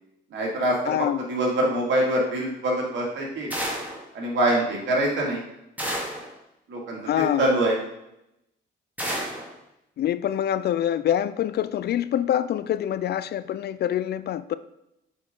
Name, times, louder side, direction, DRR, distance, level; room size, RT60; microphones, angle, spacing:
voice 1, 0.3-0.9 1.3-3.5 4.1-5.4 6.7-7.7, right 1 dB, 70° right, 2.3 m, -24 dB
voice 2, 0.9-1.2 7.1-7.5 10.0-14.5, left 10 dB, 55° left, 0.4 m, -25 dB
sound 1, 3.5-4.0 5.8-6.3 9.0-9.5, equal, 10° right, 2.1 m, -30 dB
7.6 x 4.4 x 3.8 m
cardioid pair, 90°, 20 cm